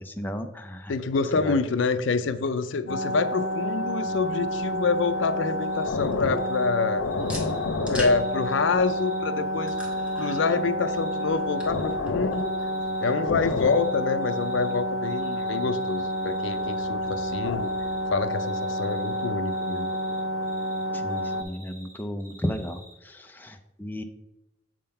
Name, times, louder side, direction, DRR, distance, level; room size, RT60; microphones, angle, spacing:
voice 1, 0.0-0.9 1.3-1.6 20.9-24.0, equal, 10° left, 5 dB, 0.4 m, -34 dB
voice 2, 0.9-7.1 7.9-9.7 10.1-12.5 13.0-17.7 18.1-19.9, left 4 dB, 65° left, 12 dB, 0.4 m, -27 dB
sound 1, 2.9-21.4, equal, 85° left, 0.7 m, -29 dB
sound 2, 4.0-18.2, equal, 5° right, 1.2 m, -47 dB
Cricket, 5.7-6.1 6.3-6.7 7.0-9.2 9.5-11.2 11.5-11.9 12.3-13.1 13.4-14.8 15.0-17.3 17.6-18.0 18.3-20.8 21.1-22.9, right 2 dB, 45° right, 2.2 m, -50 dB
7.7 x 3.7 x 5.5 m, 0.94 s
head